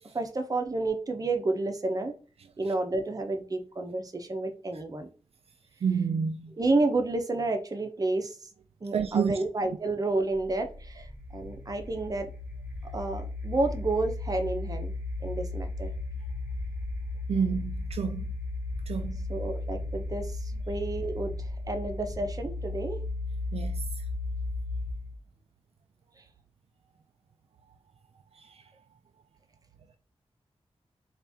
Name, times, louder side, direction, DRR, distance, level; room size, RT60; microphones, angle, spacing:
voice 1, 0.1-2.1 2.6-5.1 6.6-8.5 8.8-12.3 12.9-14.9 15.2-15.9 19.3-23.0 26.2-26.3, right 2 dB, 35° right, 0.7 m, -30 dB
voice 2, 5.8-6.5 8.9-9.4 17.3-18.3 18.9-19.2 23.5-24.0 28.3-28.6, right 6 dB, 70° right, 0.4 m, -29 dB
sound 1, 10.3-25.2, left 2 dB, 15° right, 1.2 m, -35 dB
4.2 x 2.5 x 3.5 m
wide cardioid pair, 115°, 11 cm